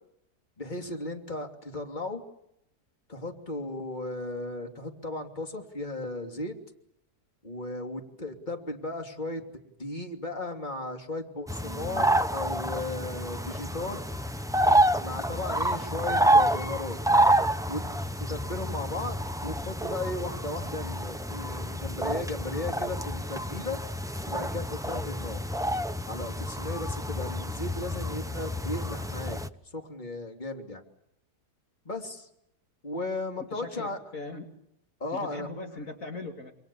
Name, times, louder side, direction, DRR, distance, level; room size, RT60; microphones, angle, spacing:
voice 1, 0.6-2.2 3.1-6.5 7.4-9.4 9.8-14.0 15.0-17.0 17.7-17.9 18.2-23.8 24.3-25.4 26.1-29.4 29.7-30.8 31.8-32.3 32.8-34.0 35.0-35.5, left 2 dB, 25° left, 3 dB, 3.2 m, -36 dB
sound 1, 11.5-29.5, right 1 dB, 5° right, 0.5 m, -28 dB
voice 2, 33.5-34.5 35.1-36.5, left 2 dB, 55° left, 3 dB, 2.9 m, -40 dB
27.5 x 26.5 x 7.1 m, 0.76 s
omnidirectional pair, 1.7 m